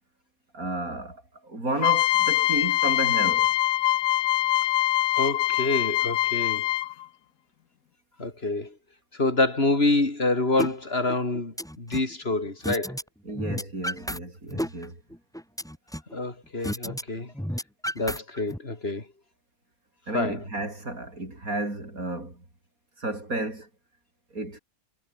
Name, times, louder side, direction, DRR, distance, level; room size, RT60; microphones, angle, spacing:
voice 1, 0.5-3.5 13.3-15.0 20.1-22.4 23.0-23.7 24.3-24.6, right 2 dB, 75° right, 7.3 m, -32 dB
sound 1, 1.8-7.1, left 14 dB, 75° left, 1.0 m, -23 dB
voice 2, 5.2-6.7 8.2-8.7 9.1-13.0 16.1-17.3 18.0-19.1 20.1-20.4, left 2 dB, 45° left, 3.9 m, -27 dB
sound 2, 10.6-10.7 11.1-12.1 12.6-13.0 13.3-14.2 14.5-16.1 16.6-17.0 17.3-18.6, equal, ahead, 2.2 m, -32 dB
omnidirectional pair, 1.5 m